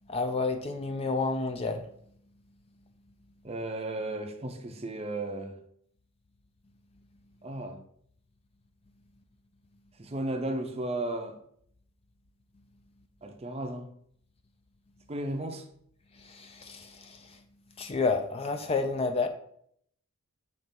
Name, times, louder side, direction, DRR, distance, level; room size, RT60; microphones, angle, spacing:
voice 1, 0.0-2.0 16.1-17.5 17.8-19.3, left 4 dB, 25° left, 0.4 m, -30 dB
voice 2, 3.4-5.5 7.4-7.8 10.0-11.4 13.2-13.9 15.1-15.6, right 1 dB, 30° right, 0.6 m, -34 dB
5.8 x 3.1 x 5.2 m
head